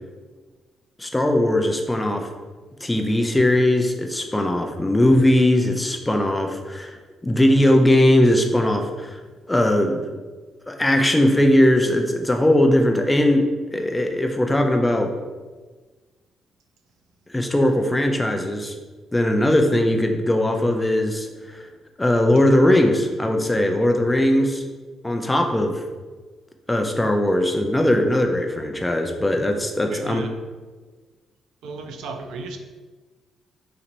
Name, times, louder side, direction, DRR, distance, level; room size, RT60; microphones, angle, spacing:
voice 1, 1.0-2.3 2.8-7.0 7.2-9.2 9.5-10.1 10.7-15.1 17.3-18.8 19.1-21.7 22.0-24.6 25.0-25.8 26.7-30.2, left 1 dB, 10° left, 4 dB, 0.4 m, -19 dB
voice 2, 29.9-30.3 31.6-32.6, right 4 dB, 85° right, 4 dB, 0.4 m, -34 dB
4.2 x 2.8 x 2.5 m, 1.3 s
cardioid pair, 90°, 0 cm